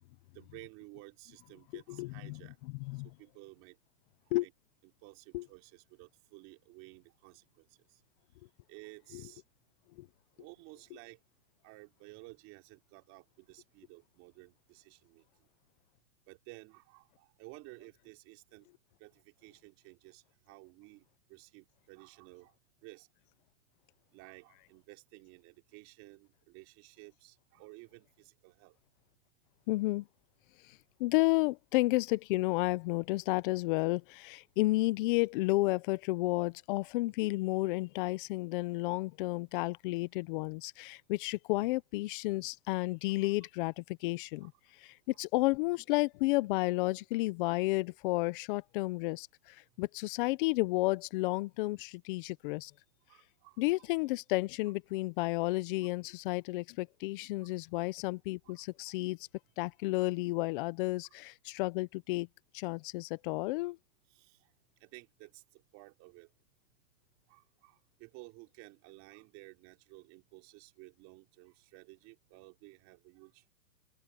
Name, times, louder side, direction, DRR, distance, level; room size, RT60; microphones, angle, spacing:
voice 1, 0.3-2.6 3.0-3.8 4.4-4.5 4.8-8.0 8.7-9.4 10.4-11.2 11.6-15.2 16.3-18.7 19.0-22.5 22.8-23.1 24.1-28.8 43.2-43.3 44.4-44.5 45.1-45.2 53.1-53.9 54.6-54.7 55.2-55.3 55.8-55.9 57.7-57.9 58.4-59.0 63.6-63.7 64.1-64.4 64.8-66.3 67.3-73.4, right 23 dB, 35° right, 3.9 m, -54 dB
voice 2, 1.7-3.1 4.3-4.5 5.3-5.5 9.1-9.3 10.0-10.1 10.9-11.0 29.7-30.1 31.0-44.5 44.8-52.7 53.6-59.2 59.6-62.3 62.5-63.8, left 21 dB, 35° left, 0.7 m, -32 dB
hypercardioid pair, 145°, 45 cm